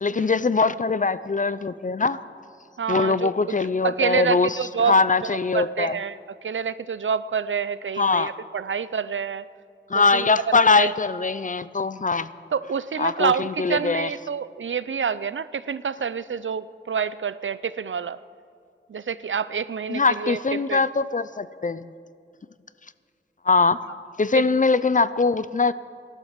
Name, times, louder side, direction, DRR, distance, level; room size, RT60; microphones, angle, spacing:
voice 1, 0.0-2.2 2.9-4.6 4.9-6.0 8.0-8.3 9.9-12.3 13.0-14.1 19.9-21.9 23.4-23.8 24.2-25.7, left 4 dB, 40° left, 15 dB, 0.5 m, -22 dB
voice 2, 2.8-3.6 3.8-5.0 5.5-9.5 9.9-10.9 12.5-18.2 18.9-20.4 20.7-20.8 24.3-24.4, right 6 dB, 75° right, 16 dB, 0.5 m, -27 dB
15.5 x 12.0 x 7.4 m, 2.3 s
wide cardioid pair, 65°, 20 cm